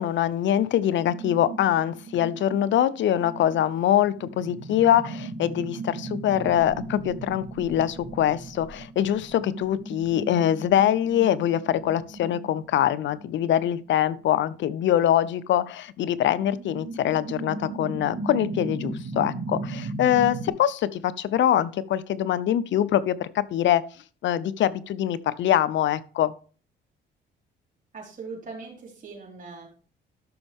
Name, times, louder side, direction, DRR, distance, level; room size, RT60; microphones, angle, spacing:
voice 1, 0.0-23.8 24.2-26.3, left 11 dB, 70° left, 0.6 m, -24 dB
sound 1, 0.8-13.6 14.2-14.3 16.1-20.5, right 3 dB, 60° right, 1.8 m, -37 dB
voice 2, 27.9-29.7, right 4 dB, 40° right, 4.2 m, -40 dB
12.5 x 6.2 x 3.5 m
cardioid pair, 90°, 20 cm